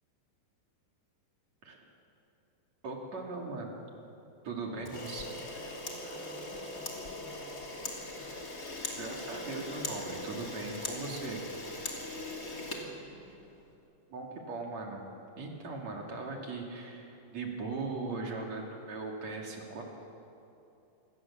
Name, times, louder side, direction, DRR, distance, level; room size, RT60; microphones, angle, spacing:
voice 1, 2.8-3.8 4.4-5.3 5.5-5.6 9.0-11.4 14.1-15.1 15.4-19.8, right 3 dB, 45° right, 0 dB, 3.5 m, -39 dB
voice 2, 4.7-8.7 12.1-13.2, equal, 70° left, -6 dB, 8.9 m, -52 dB
Camera, 4.8-13.6, left 1 dB, 25° left, 2.3 m, -40 dB
27.5 x 20.0 x 7.4 m, 2.8 s
omnidirectional pair, 5.0 m